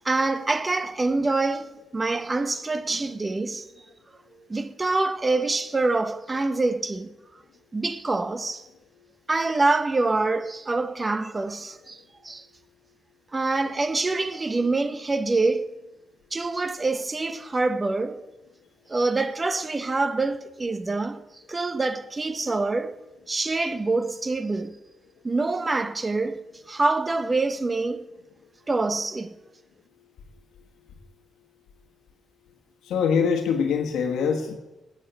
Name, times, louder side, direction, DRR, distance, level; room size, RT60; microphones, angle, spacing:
voice 1, 0.0-3.7 4.4-7.1 7.7-8.7 9.3-12.5 13.3-15.8 16.3-18.2 18.9-21.2 21.5-22.9 23.3-24.8 25.2-26.4 26.7-28.1 28.7-29.3, right 3 dB, 25° right, 0.9 m, -25 dB
voice 2, 32.8-34.6, left 6 dB, 80° left, 1.3 m, -23 dB
10.0 x 6.8 x 8.9 m
cardioid pair, 70°, 0 cm